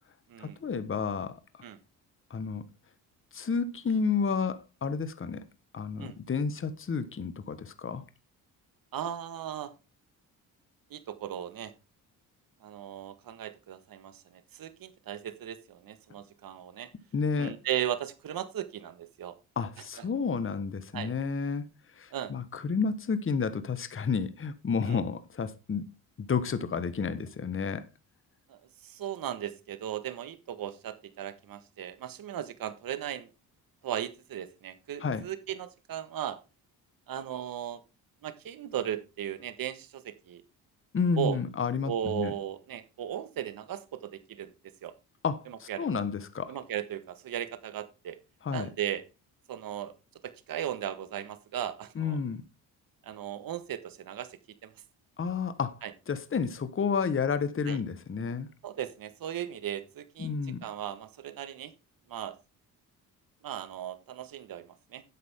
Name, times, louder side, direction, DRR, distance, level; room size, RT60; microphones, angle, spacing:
voice 1, 0.4-1.4 2.3-2.6 3.3-5.4 5.7-8.0 17.1-17.6 19.6-21.6 21.9-25.9 26.2-27.8 35.0-35.2 40.9-42.3 45.2-46.6 48.4-48.7 51.9-52.4 55.2-55.8 56.1-58.5 60.2-60.6, left 5 dB, 35° left, 1.3 m, -31 dB
voice 2, 8.9-9.7 10.9-11.7 12.6-16.9 17.4-19.3 20.9-21.1 22.1-22.3 24.9-25.0 28.5-33.3 33.8-36.4 37.1-37.8 38.2-40.4 41.2-41.4 41.8-44.5 44.8-44.9 45.5-45.9 46.5-48.2 48.5-49.0 49.5-49.9 50.5-52.2 53.0-54.3 54.6-54.7 55.8-55.9 57.6-57.8 58.6-60.3 60.6-61.7 62.1-62.3 63.4-65.0, right 10 dB, 65° right, 1.6 m, -36 dB
11.5 x 8.3 x 3.7 m
cardioid pair, 85°, 38 cm